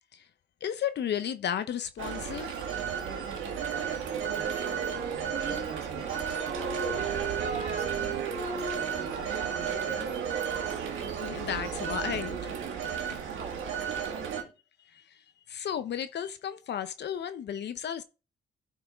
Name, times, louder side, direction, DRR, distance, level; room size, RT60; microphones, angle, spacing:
voice 1, 0.6-2.7 11.2-13.2 14.9-18.0, left 9 dB, 60° left, 0.8 m, -34 dB
Telephone, 2.0-14.4, right 7 dB, 80° right, 1.9 m, -33 dB
sound 1, 4.2-12.0, right 4 dB, 60° right, 3.6 m, -39 dB
voice 2, 4.4-10.9 13.3-14.5, right 4 dB, 35° right, 3.2 m, -45 dB
12.5 x 5.7 x 3.6 m
cardioid pair, 90°, 20 cm